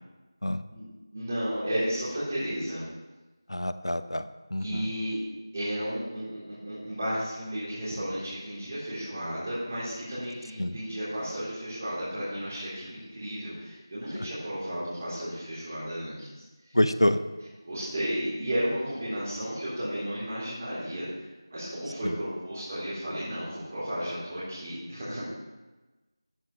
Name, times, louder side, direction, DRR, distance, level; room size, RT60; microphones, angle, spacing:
voice 1, 1.1-2.8 4.6-5.2 5.5-16.8 17.6-21.1 21.5-25.3, equal, 35° right, -11 dB, 3.9 m, -33 dB
voice 2, 3.5-4.9 10.6-10.8 16.7-17.2 22.0-22.2, left 1 dB, 85° left, 11 dB, 0.7 m, -27 dB
13.5 x 7.7 x 3.3 m, 1.2 s
figure-of-eight pair, 170°, 2 cm